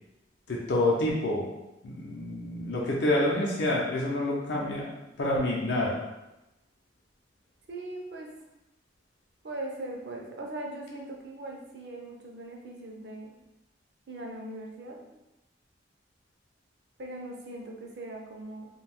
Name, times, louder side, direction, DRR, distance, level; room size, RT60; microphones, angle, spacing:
voice 1, 0.5-1.5 1.8-4.9 5.2-6.0, left 1 dB, 70° left, -3 dB, 0.6 m, -27 dB
voice 2, 7.7-8.3 9.4-13.3 14.1-15.2 17.0-18.7, right 1 dB, 60° right, 0 dB, 0.5 m, -40 dB
2.5 x 2.3 x 3.4 m, 0.96 s
head